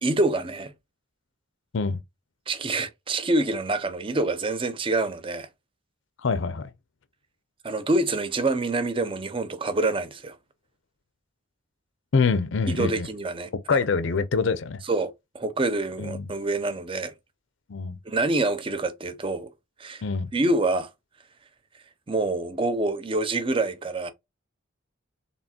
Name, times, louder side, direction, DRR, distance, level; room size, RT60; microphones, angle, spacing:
voice 1, 0.0-0.7 2.5-5.5 7.6-10.4 12.7-13.5 14.9-17.1 18.1-19.5 19.8-20.0 20.3-20.9 22.1-24.1, right 2 dB, 25° right, 0.5 m, -26 dB
voice 2, 6.2-6.7 12.1-13.1 13.7-14.8 16.0-16.3 17.7-18.0 20.0-20.3, left 4 dB, 65° left, 0.5 m, -25 dB
4.2 x 3.5 x 2.8 m
head